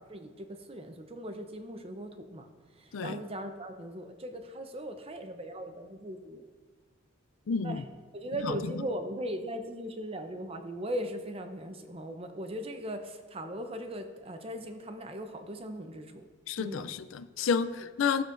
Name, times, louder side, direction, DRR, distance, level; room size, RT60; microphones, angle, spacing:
voice 1, 0.1-2.5 2.8-6.4 7.6-7.8 8.1-16.2 16.6-16.9, right 1 dB, 30° right, 7 dB, 0.7 m, -39 dB
voice 2, 7.5-7.8 8.4-8.7 16.5-18.2, left 6 dB, 80° left, 12 dB, 0.4 m, -30 dB
14.5 x 6.8 x 2.6 m, 1.5 s
head